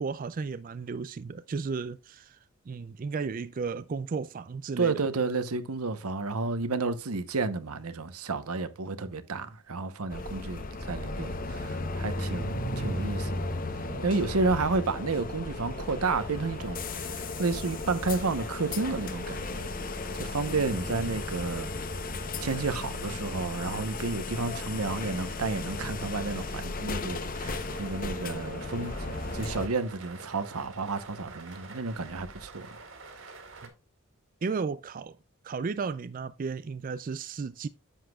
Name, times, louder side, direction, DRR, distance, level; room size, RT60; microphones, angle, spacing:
voice 1, 0.0-2.4 2.7-5.0 12.4-13.4 20.9-21.2 33.6-33.7 34.4-35.2 35.4-37.7, right 5 dB, 40° right, 0.3 m, -34 dB
voice 2, 4.8-13.5 13.8-19.7 20.2-21.7 22.4-32.8, right 3 dB, 85° right, 1.0 m, -31 dB
sound 1, 10.1-29.7, left 2 dB, 40° left, 0.8 m, -35 dB
Toilet flush, 13.7-22.8, right 1 dB, 15° right, 1.4 m, -55 dB
sound 2, 15.6-33.7, right 3 dB, 60° right, 2.2 m, -50 dB
10.0 x 8.0 x 2.3 m
head